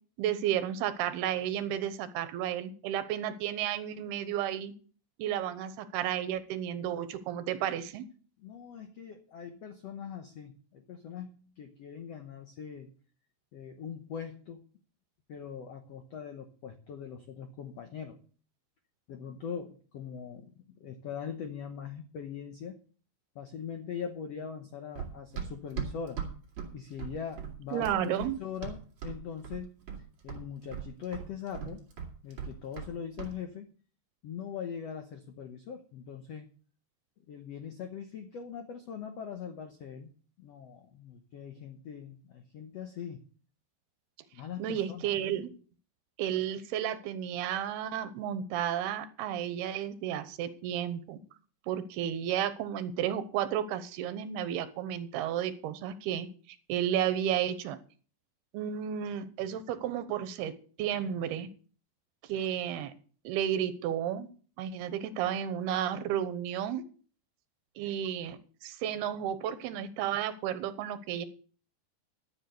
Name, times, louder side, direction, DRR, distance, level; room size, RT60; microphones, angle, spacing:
voice 1, 0.2-4.7 5.2-8.0 27.7-28.4 44.6-45.5 46.2-51.2 51.7-56.3 56.7-57.8 58.5-60.5 60.8-61.5 62.3-62.9 63.2-64.3 64.6-66.8 67.8-71.3, right 10 dB, 85° right, 12 dB, 3.0 m, -32 dB
voice 2, 8.4-12.9 13.5-14.6 15.3-18.2 19.1-22.8 23.3-26.2 26.7-29.9 30.2-31.8 32.2-33.7 34.2-36.5 37.3-40.1 40.4-43.2 44.3-45.1, left 7 dB, 90° left, 6 dB, 1.4 m, -41 dB
Run, 25.0-29.2 29.4-30.0 30.3-32.9 33.2-33.4, right 7 dB, 50° right, 3.5 m, -38 dB
13.0 x 7.4 x 6.6 m, 0.42 s
omnidirectional pair, 4.5 m